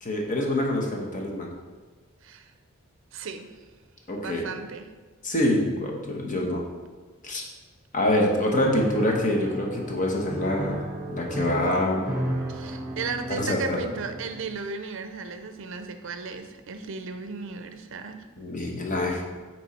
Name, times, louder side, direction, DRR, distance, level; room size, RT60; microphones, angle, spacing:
voice 1, 0.0-1.6 4.1-4.5 5.2-6.6 7.2-7.4 7.9-10.8 11.1-12.1 13.3-13.8 18.4-19.2, left 1 dB, 35° left, 0 dB, 1.1 m, -25 dB
voice 2, 3.1-3.5 4.2-4.9 12.5-18.2, right 5 dB, 60° right, 7 dB, 0.5 m, -35 dB
Piano, 8.6-14.5, right 1 dB, 5° right, 0.8 m, -34 dB
8.6 x 3.2 x 4.2 m, 1.4 s
head